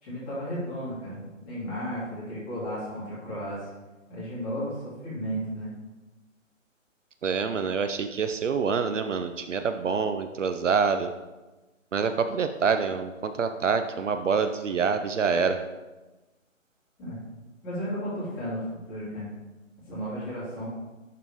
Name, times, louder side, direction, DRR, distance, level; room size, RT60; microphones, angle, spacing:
voice 1, 0.0-3.7 4.1-5.7 17.0-17.2 17.6-18.6 18.9-19.3 19.9-20.7, equal, 15° left, -10 dB, 2.5 m, -34 dB
voice 2, 7.2-11.1 11.9-15.6, right 5 dB, 65° right, 8 dB, 0.6 m, -26 dB
11.0 x 3.9 x 3.6 m, 1.1 s
hypercardioid pair, 160°, 40 cm